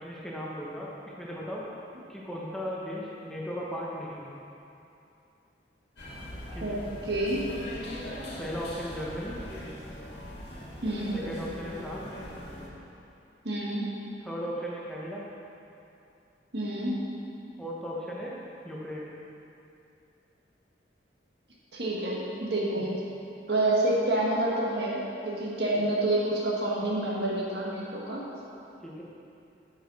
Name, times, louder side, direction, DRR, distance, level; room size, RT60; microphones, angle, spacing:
voice 1, 0.0-1.6 2.1-4.3 6.5-6.8 8.4-9.4 11.1-12.1 14.2-15.3 17.6-18.4 18.6-19.1 22.8-22.9 28.8-29.0, equal, 5° left, -5 dB, 0.8 m, -36 dB
sound 1, 6.0-12.7, left 1 dB, 70° left, 1.7 m, -41 dB
voice 2, 7.1-7.4 10.8-11.1 13.4-13.9 16.5-17.0 21.7-22.9 23.5-28.2, right 1 dB, 65° right, -5 dB, 1.6 m, -28 dB
9.8 x 6.4 x 4.1 m, 2.7 s
head